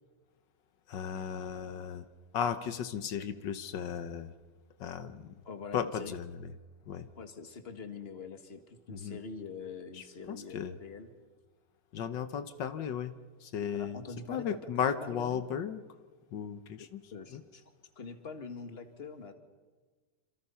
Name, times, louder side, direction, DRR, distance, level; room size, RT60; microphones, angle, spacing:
voice 1, 0.9-2.0 2.3-4.3 4.8-5.3 5.7-6.5 6.9-7.1 8.9-9.2 9.9-10.7 11.9-13.1 13.4-14.0 14.3-15.8 16.3-17.0 17.3-17.4, left 8 dB, 85° left, 10 dB, 1.7 m, -35 dB
voice 2, 5.4-6.1 7.2-11.1 13.7-14.6 15.0-15.4 16.8-17.6 18.0-19.3, left 5 dB, 35° left, 7 dB, 2.0 m, -44 dB
27.5 x 27.0 x 5.7 m, 1.4 s
omnidirectional pair, 1.9 m